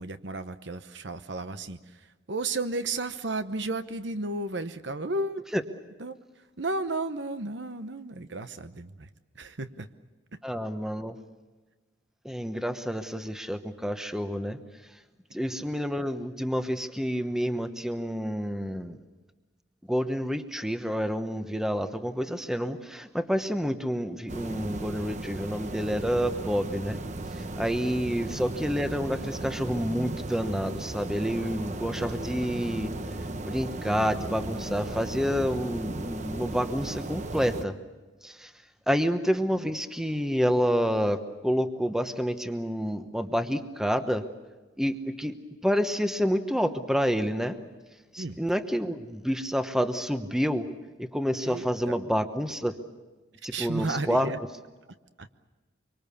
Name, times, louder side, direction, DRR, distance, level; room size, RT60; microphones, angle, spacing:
voice 1, 0.0-5.4 6.0-9.1 9.3-9.9 10.3-10.4 48.2-48.4 51.4-51.9 53.5-54.4 55.2-55.3, right 2 dB, 65° right, 10 dB, 1.0 m, -33 dB
voice 2, 10.4-11.2 12.2-14.6 15.3-19.0 19.9-27.0 27.4-32.9 33.5-37.7 38.2-38.5 38.9-44.3 44.8-45.4 45.6-47.6 48.1-50.7 51.0-52.8 53.4-54.3, equal, 5° right, 8 dB, 1.0 m, -28 dB
sound 1, 24.3-37.7, right 2 dB, 40° right, 0.9 m, -36 dB
25.0 x 24.5 x 7.0 m, 1.2 s
head